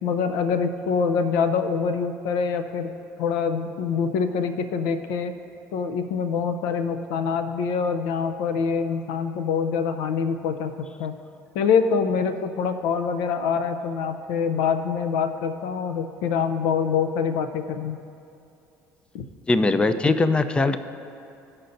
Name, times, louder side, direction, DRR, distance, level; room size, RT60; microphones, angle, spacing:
voice 1, 0.0-2.9 3.2-5.3 5.7-10.7 11.0-11.2 11.5-18.0 19.1-19.2, left 6 dB, 80° left, 9 dB, 0.5 m, -25 dB
voice 2, 19.5-20.8, left 3 dB, 15° left, 11 dB, 0.4 m, -20 dB
16.0 x 5.6 x 2.6 m, 2.6 s
supercardioid pair, 85°, 7 cm